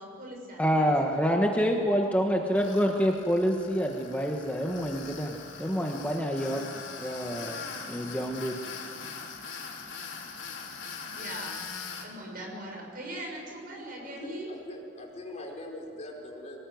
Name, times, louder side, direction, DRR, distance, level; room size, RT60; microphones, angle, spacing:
voice 1, 0.0-1.0 11.2-11.6 12.0-14.5, right 1 dB, 45° right, 0 dB, 6.7 m, -40 dB
voice 2, 0.6-5.3 5.6-6.6 7.0-7.6 7.9-8.5, equal, 5° left, 1 dB, 1.4 m, -27 dB
Tools, 2.6-12.1, left 5 dB, 70° left, 4.2 m, -41 dB
voice 3, 14.0-16.6, left 1 dB, 35° left, -1 dB, 4.7 m, -42 dB
24.5 x 19.0 x 9.4 m, 2.3 s
head